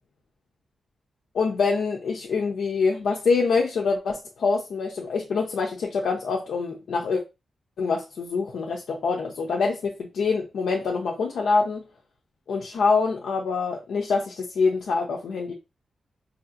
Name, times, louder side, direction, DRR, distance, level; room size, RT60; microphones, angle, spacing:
voice 1, 1.3-7.2 7.8-11.8 12.5-15.5, left 4 dB, 85° left, 0 dB, 0.6 m, -25 dB
4.8 x 2.8 x 2.5 m, 0.26 s
wide cardioid pair, 160°, 0 cm